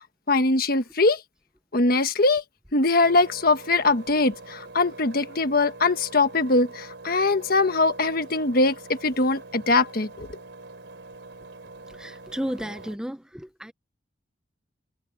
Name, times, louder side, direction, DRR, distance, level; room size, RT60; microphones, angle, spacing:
voice 1, 0.3-1.2 1.7-2.4 2.7-10.3, left 3 dB, 55° left, 1.4 m, -22 dB
Engine, 3.0-13.0, right 2 dB, 90° right, 3.8 m, -44 dB
voice 2, 12.0-13.7, equal, 5° right, 0.7 m, -33 dB
head